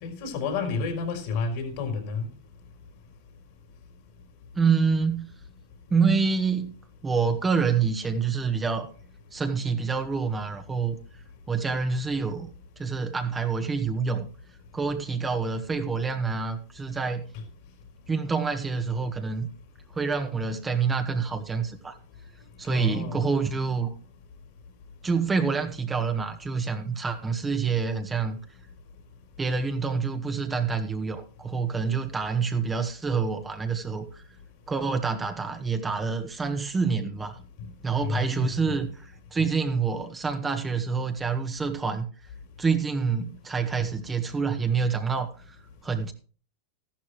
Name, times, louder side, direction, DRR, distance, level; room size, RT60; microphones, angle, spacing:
voice 1, 0.0-2.2 22.7-23.2 38.0-38.8, left 4 dB, 60° left, 4.2 m, -30 dB
voice 2, 4.5-5.3 5.9-6.7 7.0-8.9 9.3-11.0 11.5-12.5 12.8-14.3 14.7-17.3 18.1-19.5 19.9-21.9 22.6-23.9 25.0-28.4 29.4-34.2 34.7-37.4 37.8-38.9 39.3-42.1 42.6-45.6 45.8-46.1, right 5 dB, 15° right, 1.5 m, -27 dB
13.5 x 11.5 x 3.1 m
hypercardioid pair, 110°, 0 cm